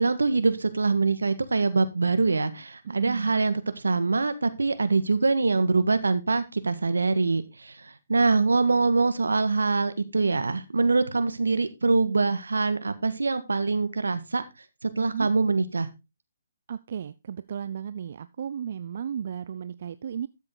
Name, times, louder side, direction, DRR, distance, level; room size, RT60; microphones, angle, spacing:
voice 1, 0.0-14.4 14.8-15.9, right 3 dB, 80° right, 11 dB, 1.6 m, -24 dB
voice 2, 3.0-3.3 15.0-15.3 16.7-20.3, right 8 dB, 55° right, 14 dB, 0.5 m, -34 dB
13.0 x 7.2 x 3.8 m, 0.25 s
figure-of-eight pair, 140°, 0 cm